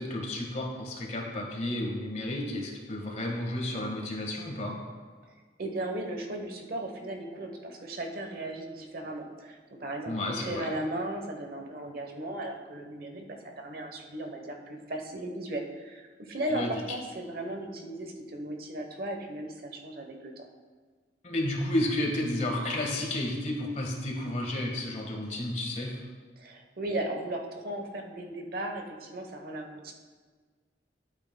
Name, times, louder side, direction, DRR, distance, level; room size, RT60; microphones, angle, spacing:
voice 1, 0.0-4.7 10.1-10.7 16.5-16.7 21.2-26.0, left 1 dB, 40° left, 0 dB, 1.5 m, -32 dB
voice 2, 5.3-20.4 26.4-29.9, right 1 dB, 55° right, 3 dB, 1.0 m, -36 dB
12.0 x 8.4 x 2.2 m, 1.5 s
head